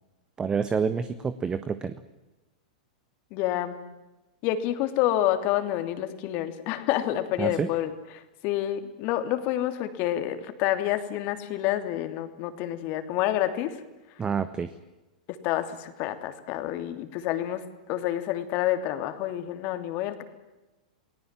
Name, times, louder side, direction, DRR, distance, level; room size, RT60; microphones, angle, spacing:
voice 1, 0.4-2.0 7.4-7.7 14.2-14.7, right 6 dB, 20° right, 12 dB, 1.4 m, -28 dB
voice 2, 3.3-3.8 4.4-13.7 15.4-17.6 17.9-20.2, left 13 dB, 45° left, 8 dB, 3.1 m, -28 dB
29.0 x 19.0 x 7.6 m, 1.1 s
hypercardioid pair, 105°, 4 cm